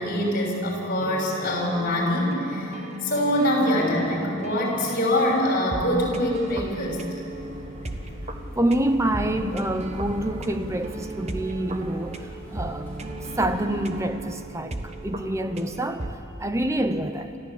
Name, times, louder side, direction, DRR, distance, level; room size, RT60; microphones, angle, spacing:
voice 1, 0.0-2.7 3.0-7.0, left 1 dB, 40° left, 5.9 m, -24 dB
sound 1, 1.0-16.1, right 2 dB, 30° right, 1.2 m, -36 dB
sound 2, 7.3-14.1, equal, 10° left, 7.4 m, -41 dB
voice 2, 8.5-12.9 13.4-17.4, right 1 dB, 15° right, 0.7 m, -27 dB
30.0 x 14.0 x 8.4 m
head